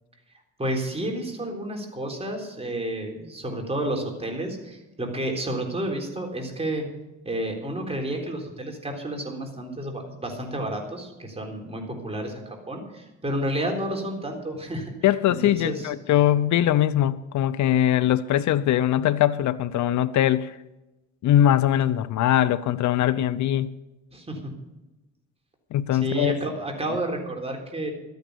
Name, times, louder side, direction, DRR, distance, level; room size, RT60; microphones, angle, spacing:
voice 1, 0.6-6.9 7.2-14.9 15.3-15.9 24.1-24.5 25.9-27.9, right 1 dB, 20° right, 3.7 m, -30 dB
voice 2, 15.0-20.6 21.2-23.7 25.7-26.4, left 12 dB, 70° left, 0.6 m, -21 dB
13.0 x 9.3 x 6.8 m
cardioid pair, 90°, 30 cm